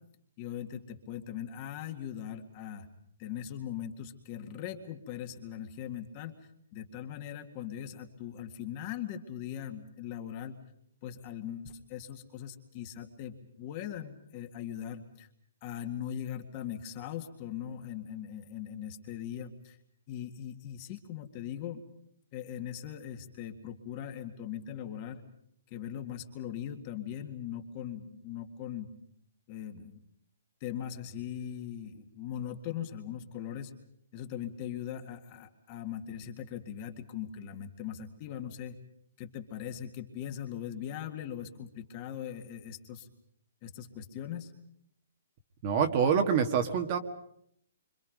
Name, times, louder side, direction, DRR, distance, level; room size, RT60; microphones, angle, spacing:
voice 1, 0.4-2.9 3.2-10.6 11.0-15.3 15.6-19.8 20.1-21.8 22.3-25.2 25.7-28.9 29.5-30.0 30.6-33.7 34.1-38.8 39.2-43.1 43.6-44.5, left 9 dB, 25° left, 5 dB, 1.9 m, -40 dB
voice 2, 45.6-47.0, right 7 dB, 25° right, 6 dB, 1.6 m, -26 dB
29.0 x 25.5 x 5.2 m, 0.69 s
hypercardioid pair, 175°, 0 cm